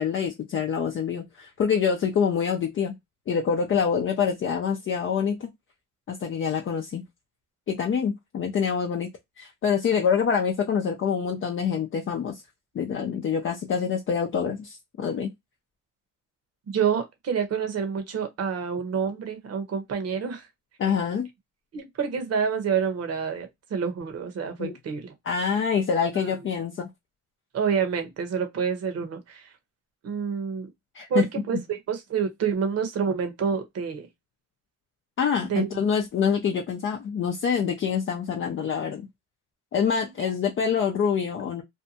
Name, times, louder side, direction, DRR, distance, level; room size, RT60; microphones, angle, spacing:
voice 1, 0.0-2.9 3.3-5.5 6.1-7.0 7.7-9.1 9.4-12.4 12.7-15.3 20.8-21.3 24.6-24.7 25.3-26.9 30.9-31.2 35.2-39.1 39.7-41.6, left 7 dB, 40° left, 0.5 m, -26 dB
voice 2, 16.7-20.5 21.7-25.1 26.1-26.3 27.5-29.5 30.0-30.7 31.1-34.1 35.4-35.7 40.2-40.3, right 6 dB, 55° right, 0.9 m, -28 dB
2.7 x 2.2 x 2.7 m
cardioid pair, 90°, 30 cm